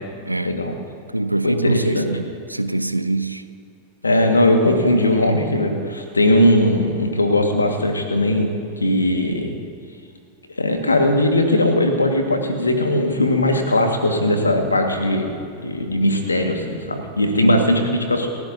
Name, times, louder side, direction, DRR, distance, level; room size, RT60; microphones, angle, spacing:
voice 1, 0.4-0.7 1.4-2.1 4.0-8.5 8.8-9.5 10.6-15.3 15.6-18.3, left 1 dB, 80° left, 1.8 m, -19 dB
voice 2, 1.1-3.4 17.4-17.7, right 2 dB, 85° right, 0.6 m, -23 dB
29.0 x 15.0 x 2.8 m
figure-of-eight pair, 90°, 0 cm